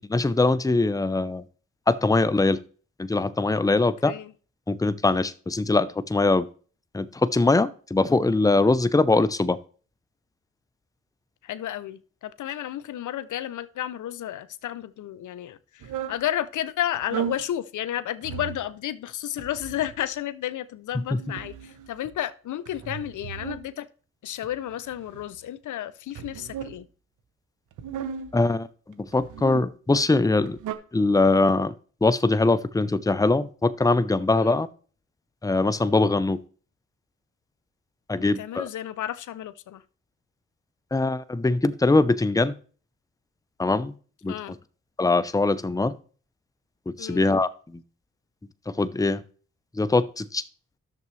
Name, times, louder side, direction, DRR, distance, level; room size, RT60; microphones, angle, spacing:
voice 1, 0.0-1.4 1.9-2.6 3.0-4.1 4.7-6.5 6.9-9.6 28.3-28.7 29.0-30.6 30.9-31.7 32.0-34.7 35.4-36.4 38.1-38.7 40.9-42.5 43.6-43.9 44.2-44.3 45.0-45.9 46.9-47.5 48.7-49.2 49.7-50.4, left 3 dB, 10° left, 0.6 m, -22 dB
voice 2, 11.4-23.9 24.2-26.9 34.3-34.6 38.2-39.8 44.3-44.6 47.0-47.2, left 12 dB, 75° left, 0.5 m, -32 dB
sound 1, 15.8-16.2 16.9-17.5 18.2-18.7 19.4-20.0 20.9-22.2 22.6-23.7 24.4-25.4 26.1-26.8 27.7-28.4 29.1-29.7 30.3-30.7, right 9 dB, 80° right, 0.7 m, -36 dB
10.5 x 6.7 x 3.2 m
supercardioid pair, 45°, 31 cm